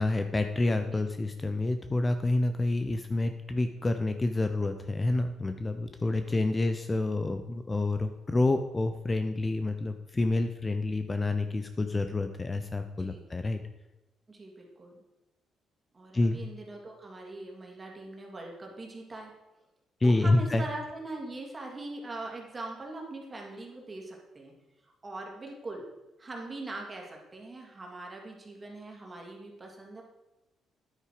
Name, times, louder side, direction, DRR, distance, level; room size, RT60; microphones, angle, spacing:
voice 1, 0.0-13.6 16.1-16.4 20.0-20.6, left 2 dB, 25° left, 8 dB, 0.7 m, -28 dB
voice 2, 5.8-6.4 13.0-13.2 14.3-15.0 15.9-19.3 20.0-24.5 25.0-25.8 26.2-30.0, right 2 dB, 25° right, 0 dB, 2.7 m, -42 dB
10.0 x 8.3 x 5.0 m, 1.0 s
cardioid pair, 90°, 0 cm